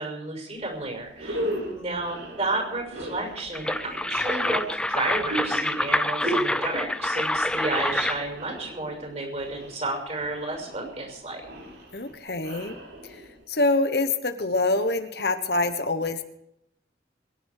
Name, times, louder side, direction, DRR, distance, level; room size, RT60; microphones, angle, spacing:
voice 1, 0.0-1.5 1.7-11.4, right 2 dB, 35° right, 2 dB, 6.1 m, -32 dB
sound 1, 0.6-0.7 1.1-13.5, right 1 dB, 90° right, 6.8 m, -36 dB
voice 2, 1.4-1.8 11.9-12.8 13.0-13.2 13.5-16.2, left 2 dB, 60° left, 9 dB, 1.2 m, -26 dB
sound 2, 3.4-8.3, left 1 dB, 5° left, 0.5 m, -27 dB
23.0 x 11.0 x 4.9 m, 0.80 s
head